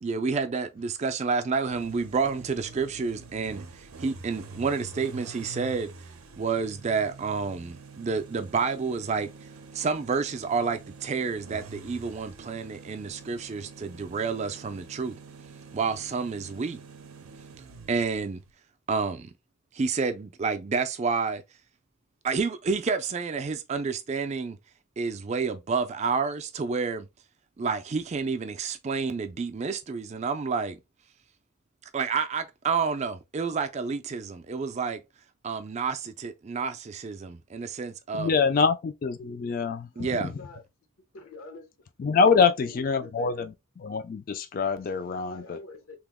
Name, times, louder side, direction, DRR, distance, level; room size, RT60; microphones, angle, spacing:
voice 1, 0.0-5.9 6.4-9.3 9.7-15.2 15.7-16.8 17.9-18.4 18.9-19.3 19.7-21.4 22.2-24.6 25.0-27.1 27.6-30.8 31.9-35.0 35.4-38.3 40.0-40.3, right 5 dB, 35° right, 0.3 m, -29 dB
sound 1, 1.7-18.5, right 4 dB, 85° right, 0.5 m, -46 dB
voice 2, 38.2-40.3 42.0-43.5 43.8-45.6, left 5 dB, 40° left, 0.3 m, -25 dB
voice 3, 39.9-40.6 41.1-41.7 42.2-43.5 45.1-46.0, left 3 dB, 80° left, 0.7 m, -44 dB
2.9 x 2.0 x 3.5 m
head